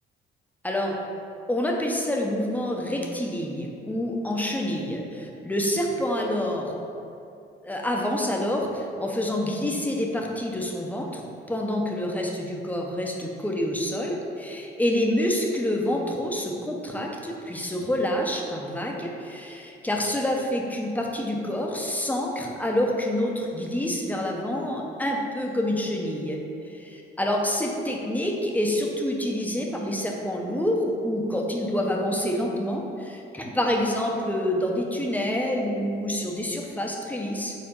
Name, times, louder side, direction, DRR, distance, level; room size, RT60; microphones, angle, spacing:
voice 1, 0.6-1.0 1.5-6.7 7.6-11.2 11.5-26.4 26.6-37.5, left 1 dB, 10° left, 0 dB, 0.9 m, -27 dB
4.7 x 4.1 x 5.5 m, 2.6 s
cardioid pair, 90°, 20 cm